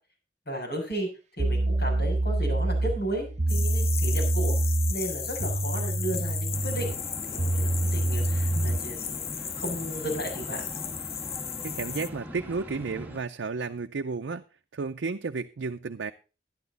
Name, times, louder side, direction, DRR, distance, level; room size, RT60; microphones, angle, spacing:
voice 1, 0.5-1.1 1.4-4.5 4.9-6.9 7.3-9.3 9.6-10.8, right 1 dB, 65° left, -1 dB, 6.6 m, -34 dB
sound 1, 0.9-1.0 1.4-8.9, right 2 dB, 40° right, 0.8 m, -27 dB
sound 2, 3.5-12.1, left 8 dB, 35° left, 0.7 m, -35 dB
sound 3, 6.5-13.2, equal, 10° right, 1.8 m, -41 dB
voice 2, 11.6-14.4 14.7-16.1, right 4 dB, 75° right, 5 dB, 0.5 m, -32 dB
11.5 x 11.5 x 4.0 m, 0.33 s
head